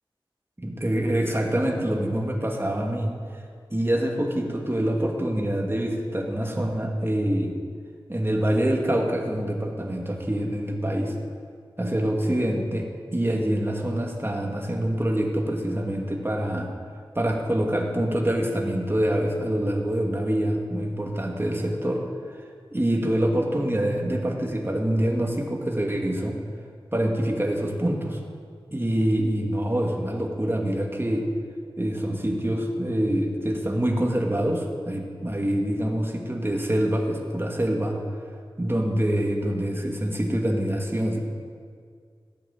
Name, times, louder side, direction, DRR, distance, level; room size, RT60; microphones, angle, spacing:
voice 1, 0.6-3.1 3.7-7.6 8.1-11.1 11.8-16.7 17.1-22.0 22.7-26.4 26.9-28.2 28.7-31.2 31.8-37.9 38.6-41.2, right 1 dB, 25° right, 0 dB, 2.3 m, -25 dB
16.5 x 8.6 x 7.4 m, 2.1 s
wide cardioid pair, 45°, 9 cm